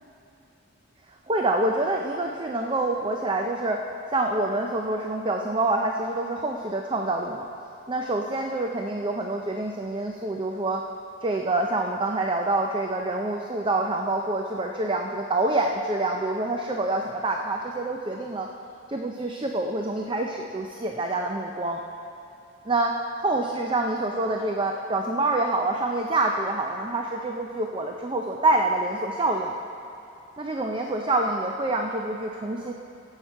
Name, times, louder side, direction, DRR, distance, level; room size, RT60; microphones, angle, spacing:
voice 1, 1.3-3.8 4.1-7.5 7.9-10.8 11.2-18.5 18.9-21.8 22.7-29.5 30.4-32.7, right 2 dB, 25° right, 2 dB, 0.4 m, -26 dB
16.5 x 7.3 x 4.5 m, 2.8 s
head